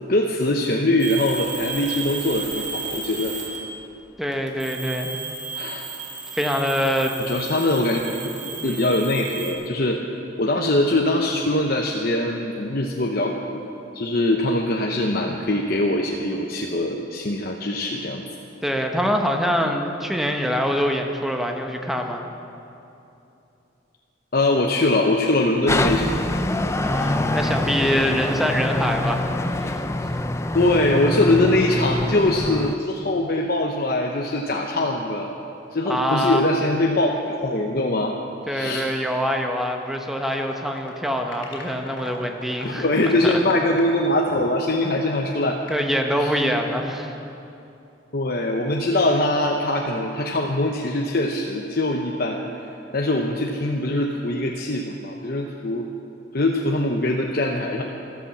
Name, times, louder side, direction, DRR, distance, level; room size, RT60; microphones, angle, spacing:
voice 1, 0.1-3.3 5.5-5.8 7.2-8.0 8.4-10.0 10.4-13.6 13.9-18.2 24.3-26.2 30.5-35.3 35.7-38.1 38.5-38.9 42.6-45.6 46.2-46.4 48.1-52.5 52.9-55.9 56.3-57.8, left 1 dB, 50° left, 0 dB, 0.9 m, -22 dB
sound 1, 1.0-3.8 4.3-9.5, right 5 dB, 40° right, 2.2 m, -33 dB
voice 2, 4.2-5.2 5.7-5.8 6.3-7.1 8.6-8.8 18.6-22.2 26.7-29.3 29.6-29.8 35.9-36.4 38.5-42.9 43.2-43.3 44.8-45.0 45.7-47.2, equal, ahead, 3 dB, 1.0 m, -24 dB
sound 2, 25.7-32.8, left 1 dB, 15° left, 0.4 m, -25 dB
sound 3, 40.2-45.8, left 3 dB, 75° left, 3.5 m, -38 dB
14.0 x 13.0 x 7.2 m, 2.8 s
head